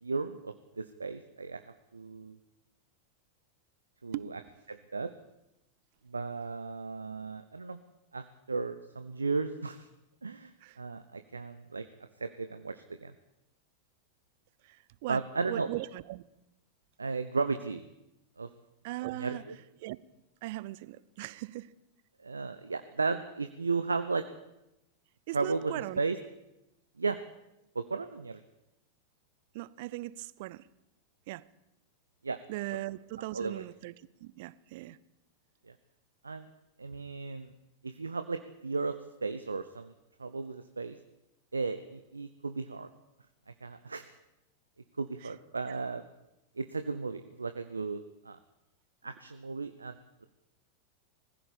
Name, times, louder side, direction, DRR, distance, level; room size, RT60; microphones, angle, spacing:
voice 1, 0.0-1.6 1.9-2.4 4.0-4.4 4.7-5.1 6.1-7.8 8.1-9.9 10.2-11.9 12.2-13.1 15.1-15.7 17.0-17.8 18.4-18.5 19.2-19.5 22.2-24.2 25.3-26.2 27.0-27.2 27.7-28.4 32.2-32.4 33.3-33.6 35.7-35.8 36.2-36.5 36.8-37.5 37.8-39.9 40.2-41.0 41.5-42.9 43.6-44.1 45.0-46.0 46.6-48.4 49.0-49.9, right 4 dB, 75° right, 0.9 m, -35 dB
voice 2, 14.6-16.2 18.8-19.4 19.8-20.0 20.4-21.7 25.3-26.0 29.5-30.7 31.3-31.4 32.5-33.9 34.2-35.0 45.2-45.3 45.7-45.8, right 18 dB, 50° right, 0.7 m, -39 dB
19.5 x 15.5 x 8.6 m
figure-of-eight pair, 90°, 0 cm